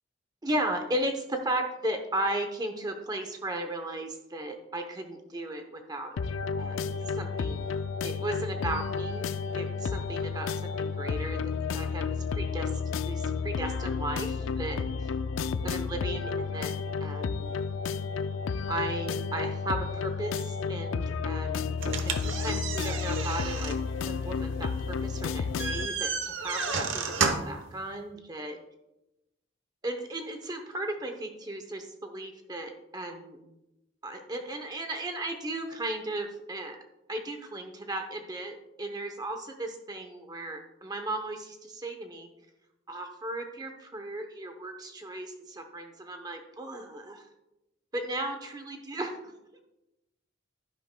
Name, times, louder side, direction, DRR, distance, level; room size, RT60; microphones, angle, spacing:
voice 1, 0.4-6.2 6.6-7.7 8.0-11.4 11.7-12.1 12.3-15.1 15.6-16.7 17.0-17.5 18.7-21.7 22.0-23.7 24.1-28.6 29.8-33.4 34.0-36.8 37.1-42.3 42.9-47.2 47.9-49.1 49.5-49.6, right 1 dB, 20° right, 5 dB, 0.7 m, -36 dB
sound 1, 6.2-25.9, left 5 dB, 85° left, 0.4 m, -31 dB
sound 2, 21.8-27.6, right 5 dB, 75° right, 0.9 m, -32 dB
11.5 x 10.0 x 2.2 m, 0.93 s
head